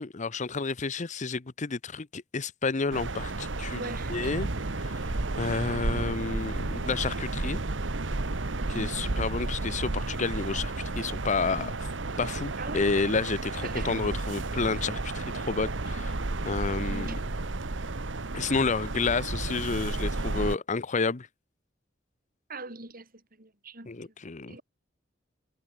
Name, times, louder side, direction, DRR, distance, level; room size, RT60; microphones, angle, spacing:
voice 1, 0.0-4.5 4.7-5.1 5.4-7.6 8.7-11.7 12.2-16.1 16.4-17.1 18.3-21.3 23.9-24.6, left 4 dB, 40° left, 0.8 m, -30 dB
sound 1, 2.9-20.6, right 2 dB, 75° right, 1.3 m, -32 dB
voice 2, 3.7-4.3 8.6-8.9 12.6-13.0 13.5-14.0 16.8-17.3 22.5-23.1 23.4-23.9 24.5-24.6, right 3 dB, 50° right, 6.7 m, -41 dB
head